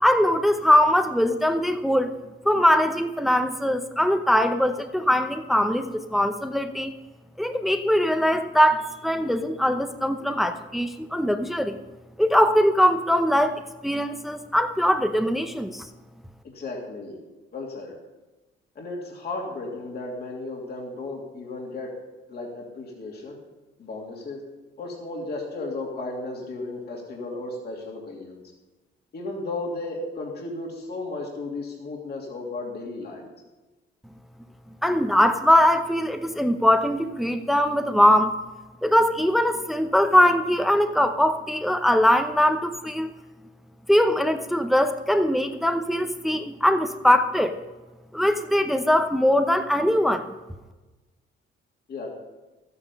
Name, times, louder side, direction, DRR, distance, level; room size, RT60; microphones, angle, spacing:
voice 1, 0.0-2.1 2.4-6.9 7.4-11.8 12.2-15.9 34.8-38.4 38.8-43.2 43.9-47.6 48.1-50.3, equal, ahead, 7 dB, 0.8 m, -21 dB
voice 2, 16.4-17.2 17.5-17.9 18.8-21.9 22.3-23.4 23.8-24.4 24.8-28.4 29.1-33.3 51.9-52.1, left 2 dB, 55° left, -1 dB, 2.8 m, -34 dB
12.5 x 9.7 x 5.5 m, 1.1 s
cardioid pair, 90°, 20 cm